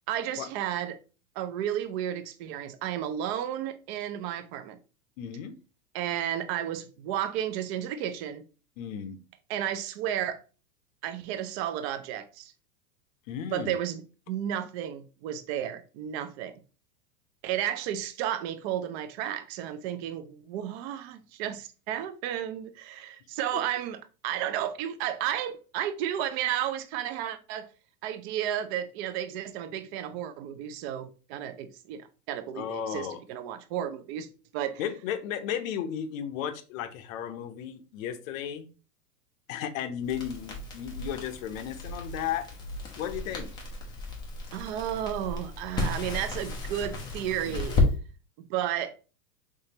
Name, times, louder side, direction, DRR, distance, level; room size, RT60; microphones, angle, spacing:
voice 1, 0.1-1.0 1.4-4.8 5.9-8.4 9.5-10.4 11.0-12.5 13.5-16.6 17.4-27.7 28.0-34.3 34.5-34.8 44.5-47.9 48.4-48.9, right 10 dB, 40° right, 0.5 m, -33 dB
voice 2, 5.2-5.6 8.8-9.2 13.3-13.8 32.5-33.2 34.8-38.7 39.5-42.5 42.9-43.5, left 9 dB, 55° left, 0.6 m, -34 dB
Crackle, 40.0-47.9, left 3 dB, 10° left, 0.3 m, -33 dB
3.7 x 3.2 x 2.8 m
hypercardioid pair, 115°, 48 cm